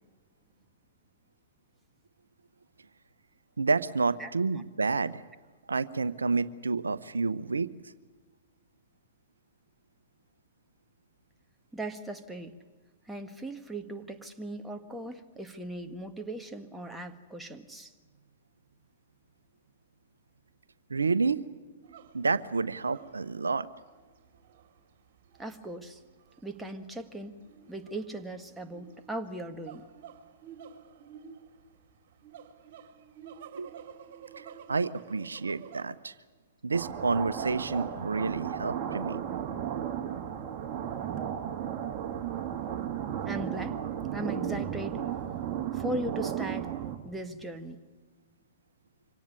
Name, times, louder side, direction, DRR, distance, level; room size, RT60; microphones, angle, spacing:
voice 1, 3.6-5.2 5.7-7.7 20.9-21.4 22.1-23.7 33.5-33.7 34.4-36.1 36.6-39.2, right 4 dB, 85° right, 15 dB, 0.8 m, -29 dB
voice 2, 11.7-12.6 13.1-17.9 25.4-26.0 26.4-27.3 27.7-29.8 43.3-43.8 44.1-45.0 45.7-46.7 47.0-47.8, right 1 dB, 5° right, 5 dB, 1.6 m, -38 dB
sound 1, 21.8-35.8, right 8 dB, 55° right, 2.9 m, -51 dB
sound 2, 36.7-47.0, right 9 dB, 35° right, 2.3 m, -34 dB
25.0 x 17.5 x 9.8 m, 1.4 s
hypercardioid pair, 115°, 0 cm